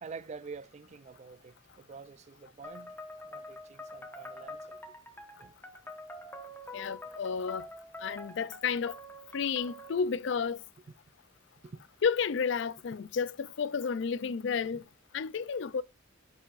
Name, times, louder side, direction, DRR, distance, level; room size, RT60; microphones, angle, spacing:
voice 1, 0.0-3.0 3.2-4.9 5.4-5.6 11.6-11.9 14.7-14.8, right 5 dB, 35° right, 0.3 m, -47 dB
sound 1, 2.6-10.0, left 1 dB, 10° left, 1.1 m, -46 dB
voice 2, 6.7-7.7 8.0-9.0 9.3-10.6 12.0-14.8 15.1-15.8, left 6 dB, 60° left, 0.4 m, -31 dB
9.8 x 5.5 x 2.5 m
head